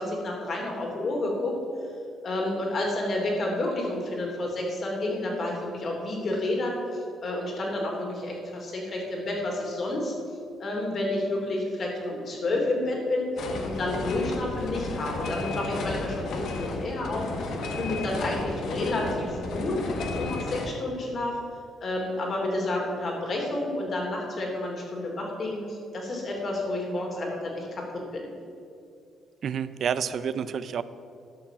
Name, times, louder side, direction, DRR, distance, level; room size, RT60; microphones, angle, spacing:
voice 1, 0.0-1.5 2.2-10.1 10.6-17.3 17.7-19.8 20.2-21.4 21.8-28.3, left 1 dB, 50° left, 0 dB, 3.0 m, -30 dB
sound 1, 13.4-20.7, left 3 dB, 75° left, 1.5 m, -32 dB
voice 2, 29.4-30.8, right 7 dB, 60° right, 14 dB, 0.5 m, -29 dB
11.5 x 6.0 x 7.3 m, 2.5 s
cardioid pair, 90°, 0 cm